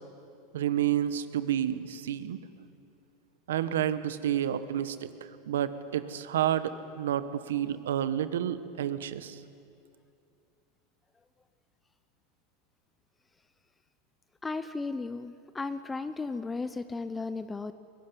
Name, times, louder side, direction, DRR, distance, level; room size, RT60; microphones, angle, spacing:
voice 1, 0.5-2.4 3.5-9.4, right 10 dB, 90° right, 13 dB, 1.2 m, -30 dB
voice 2, 14.4-17.7, left 3 dB, 15° left, 12 dB, 0.7 m, -35 dB
22.5 x 15.5 x 9.7 m, 2.5 s
supercardioid pair, 115°, 0 cm